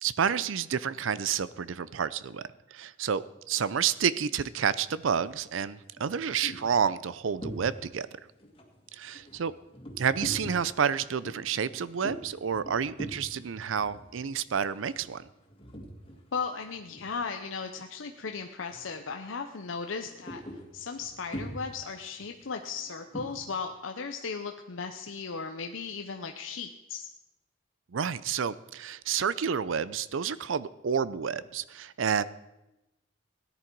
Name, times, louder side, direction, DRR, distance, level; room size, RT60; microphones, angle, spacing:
voice 1, 0.0-8.1 8.9-9.5 10.0-15.2 27.9-32.2, right 7 dB, 85° right, 17 dB, 0.5 m, -29 dB
sound 1, 5.0-5.3 5.8-8.1 8.4-16.3 16.6-17.7 18.0-18.2 18.6-19.0 19.3-23.5, equal, 30° left, 2.0 m, -44 dB
voice 2, 16.3-20.4 20.7-27.1, left 5 dB, 85° left, 5 dB, 0.7 m, -36 dB
17.0 x 10.5 x 4.6 m, 0.97 s
head